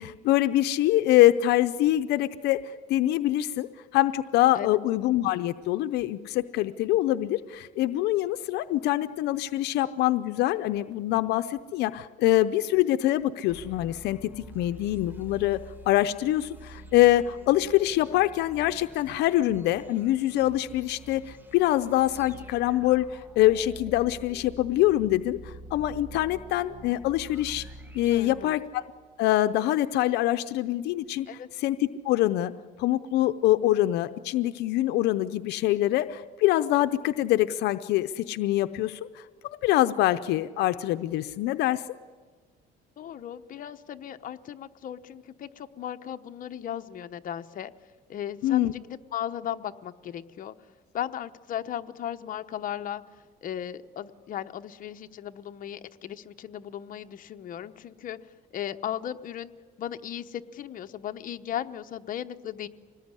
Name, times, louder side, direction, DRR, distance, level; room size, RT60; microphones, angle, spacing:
voice 1, 0.0-15.6 15.9-27.6 27.9-28.8 29.2-31.3 31.6-32.5 32.8-41.8 48.4-48.7, left 14 dB, 85° left, 11 dB, 0.7 m, -24 dB
sound 1, 13.5-29.1, right 1 dB, 10° right, 1.6 m, -47 dB
voice 2, 28.1-28.6 31.3-31.5 43.0-47.7 48.1-50.5 50.9-53.0 53.4-58.2 58.5-59.5 59.8-62.7, left 10 dB, 55° left, 7 dB, 1.0 m, -36 dB
25.5 x 19.5 x 9.8 m, 1.5 s
cardioid pair, 110°, 17 cm